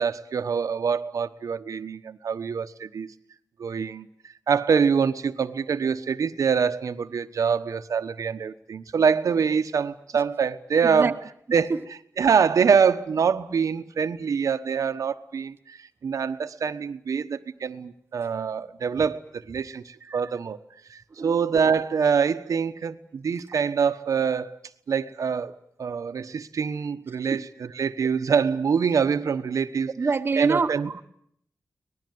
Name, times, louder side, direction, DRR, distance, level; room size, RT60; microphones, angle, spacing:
voice 1, 0.0-3.1 3.6-4.1 4.5-11.2 11.5-20.6 20.9-24.6 24.9-25.5 25.8-30.1 30.3-30.9, right 6 dB, 80° right, 1.1 m, -25 dB
voice 2, 30.0-31.0, right 4 dB, 40° right, 1.1 m, -25 dB
24.5 x 19.5 x 9.4 m
wide cardioid pair, 165°, 6 cm